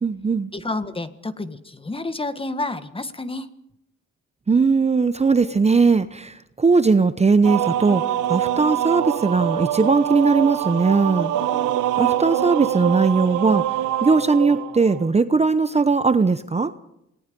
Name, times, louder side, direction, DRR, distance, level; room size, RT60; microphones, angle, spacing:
voice 1, 0.0-0.5 4.5-8.0 8.3-11.3 12.0-16.7, right 4 dB, 20° right, 12 dB, 0.9 m, -19 dB
voice 2, 0.5-3.5, left 2 dB, 20° left, 11 dB, 1.6 m, -29 dB
sound 1, 7.4-15.1, right 11 dB, 90° right, 1.2 m, -24 dB
28.0 x 19.5 x 5.4 m, 0.81 s
cardioid pair, 90°, 30 cm